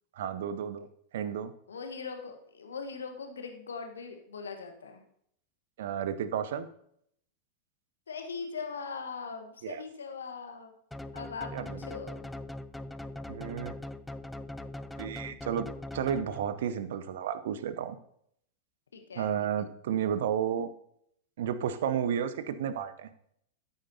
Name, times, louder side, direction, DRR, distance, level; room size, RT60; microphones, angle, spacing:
voice 1, 0.1-0.9 1.1-1.5 5.8-6.7 9.6-9.8 11.5-11.8 13.3-13.7 15.0-15.7 15.9-18.0 19.1-20.7 21.4-23.1, right 8 dB, 55° right, 14 dB, 0.7 m, -32 dB
voice 2, 1.7-5.0 8.1-10.7 11.1-12.3 18.9-19.3, left 5 dB, 70° left, 5 dB, 1.3 m, -40 dB
sound 1, 10.9-16.7, left 1 dB, 5° left, 0.4 m, -41 dB
13.5 x 8.0 x 2.8 m, 0.70 s
figure-of-eight pair, 90°, 0 cm